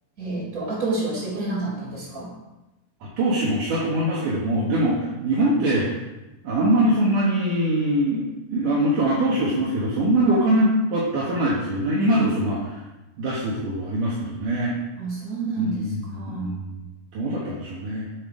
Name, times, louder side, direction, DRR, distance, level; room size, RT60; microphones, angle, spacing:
voice 1, 0.2-2.3 15.0-16.6, right 3 dB, 20° right, -5 dB, 3.7 m, -29 dB
voice 2, 3.0-6.0 6.4-8.2 8.5-12.7 13.2-14.7 15.6-16.7 17.1-18.1, right 1 dB, 65° right, -6 dB, 2.1 m, -23 dB
9.1 x 7.3 x 5.0 m, 1.0 s
omnidirectional pair, 5.9 m